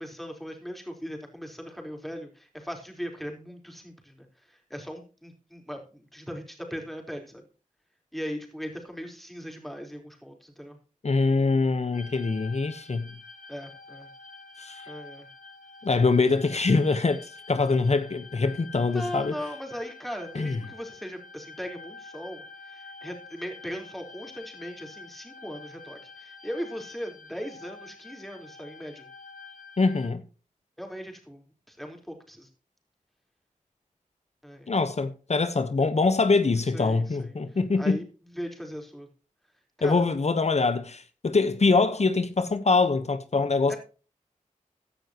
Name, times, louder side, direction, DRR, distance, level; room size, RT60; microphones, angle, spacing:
voice 1, 0.0-7.4 8.1-10.8 13.5-14.1 14.9-15.3 18.9-29.1 30.8-32.5 34.4-34.7 36.7-39.1 39.8-40.1 43.7-43.8, equal, ahead, 4.1 m, -39 dB
voice 2, 11.0-13.1 14.6-14.9 15.8-19.4 20.3-20.6 29.8-30.2 34.7-38.0 39.8-43.7, left 3 dB, 55° left, 1.1 m, -24 dB
sound 1, 11.9-30.1, left 4 dB, 85° left, 2.1 m, -47 dB
16.0 x 10.0 x 3.0 m
wide cardioid pair, 60°, 14 cm